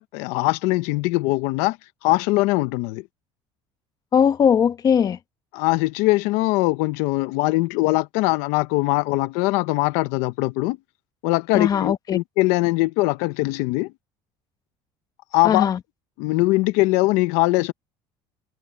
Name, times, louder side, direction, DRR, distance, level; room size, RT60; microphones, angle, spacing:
voice 1, 0.0-1.8 2.0-3.0 5.5-10.8 11.2-13.9 15.3-15.7 16.2-17.7, left 21 dB, 80° left, 1.0 m, -21 dB
voice 2, 4.1-5.2 11.5-12.2 15.4-15.8, left 7 dB, 30° left, 1.2 m, -19 dB
cardioid pair, 140°, 12 cm